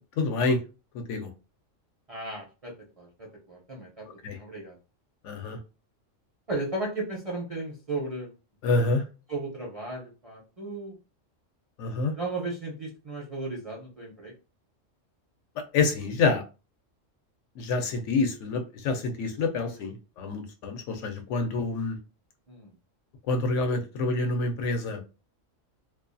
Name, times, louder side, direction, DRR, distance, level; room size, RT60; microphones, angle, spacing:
voice 1, 0.2-0.6 0.9-1.3 4.2-4.4 5.2-5.6 8.6-9.0 11.8-12.1 15.7-16.4 17.6-22.0 23.3-25.0, left 3 dB, 75° left, 0.9 m, -27 dB
voice 2, 2.1-4.8 6.5-8.3 9.3-11.0 12.2-14.3 17.8-17.9 19.7-19.8 22.5-22.7, right 2 dB, 40° right, 0.5 m, -35 dB
2.4 x 2.2 x 2.5 m
omnidirectional pair, 1.3 m